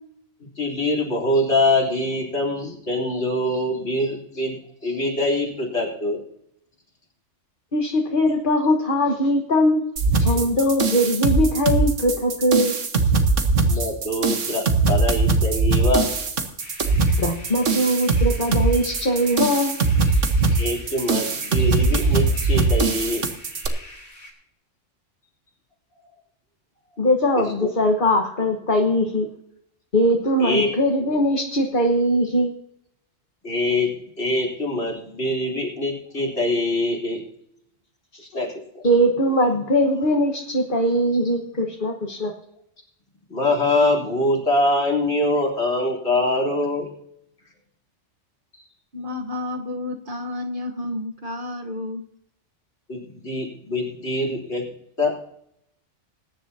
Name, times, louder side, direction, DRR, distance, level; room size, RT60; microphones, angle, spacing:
voice 1, 0.6-4.6 4.8-6.2 13.6-16.1 20.5-23.3 27.4-27.5 30.4-30.7 33.4-33.9 34.2-37.2 38.3-38.5 38.7-38.8 43.3-46.9 52.9-54.6 55.0-55.2, left 1 dB, 65° left, -1 dB, 3.8 m, -24 dB
voice 2, 7.7-9.8 10.2-12.7 17.2-19.8 27.0-29.3 29.9-32.5 38.1-38.3 38.8-42.3, equal, 45° left, 2 dB, 1.5 m, -21 dB
sound 1, 10.0-23.7, right 3 dB, 85° right, 1.6 m, -21 dB
sound 2, 16.6-24.3, left 1 dB, 80° left, 4.0 m, -43 dB
voice 3, 48.9-52.0, left 2 dB, 45° right, 3 dB, 1.4 m, -31 dB
21.0 x 10.5 x 2.8 m, 0.74 s
omnidirectional pair, 1.2 m